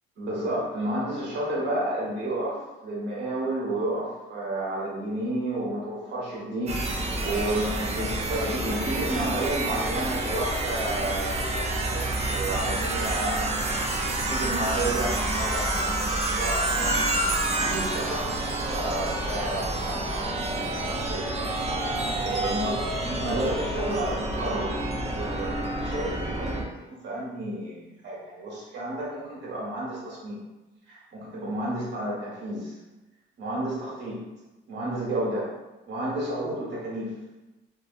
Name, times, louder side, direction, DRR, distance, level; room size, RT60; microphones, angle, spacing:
voice 1, 0.2-17.1 17.6-20.3 21.0-21.2 22.2-24.7 25.0-26.6 27.0-30.4 30.9-32.8 33.4-34.2 34.7-35.5 35.9-37.1, right 1 dB, 65° right, -5 dB, 1.1 m, -31 dB
sound 1, 6.7-26.6, right 2 dB, 35° right, 0.4 m, -28 dB
2.7 x 2.2 x 2.5 m, 1.1 s
cardioid pair, 90°, 20 cm